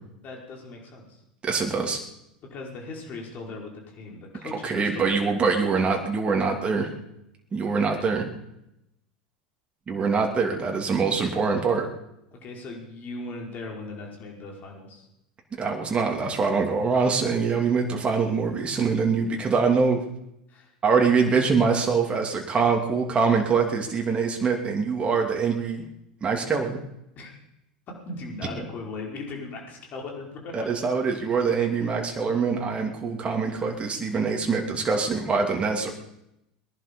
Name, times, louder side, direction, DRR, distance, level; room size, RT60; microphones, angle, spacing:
voice 1, 0.2-1.2 2.4-5.3 5.6-5.9 7.7-8.1 12.3-15.1 20.5-20.7 27.2-27.3 27.9-30.7 31.8-31.9, left 3 dB, 40° left, 0 dB, 5.2 m, -38 dB
voice 2, 1.4-2.0 4.6-6.9 7.5-8.3 9.9-11.9 15.6-20.0 20.8-25.8 26.2-26.8 30.5-35.9, right 5 dB, 25° right, 1 dB, 2.8 m, -24 dB
21.0 x 11.0 x 5.5 m, 0.84 s
hypercardioid pair, 85°, 4 cm